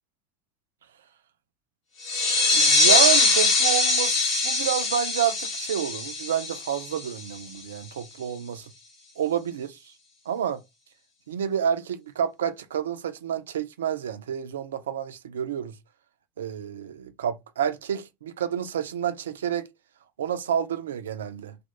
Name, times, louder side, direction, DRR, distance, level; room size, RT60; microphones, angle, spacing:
sound 1, 2.0-7.4, left 3 dB, 55° left, 0.8 m, -22 dB
voice 1, 2.5-8.7 9.2-9.9 10.3-10.6 11.3-15.7 16.4-19.7 20.2-21.6, right 9 dB, 80° right, 0.3 m, -29 dB
2.2 x 2.2 x 2.9 m
figure-of-eight pair, 70°, 0 cm